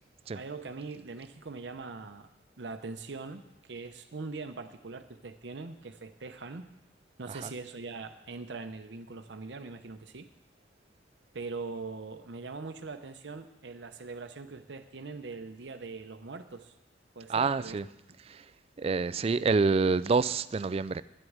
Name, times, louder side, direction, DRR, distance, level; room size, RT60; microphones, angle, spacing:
voice 1, 0.3-2.3 2.6-6.7 7.2-10.3 11.3-16.7 17.2-17.8, right 4 dB, 70° right, 0.7 m, -42 dB
voice 2, 17.3-17.9 18.2-18.5 18.8-21.0, right 4 dB, 35° right, 0.3 m, -27 dB
11.0 x 8.0 x 8.6 m
head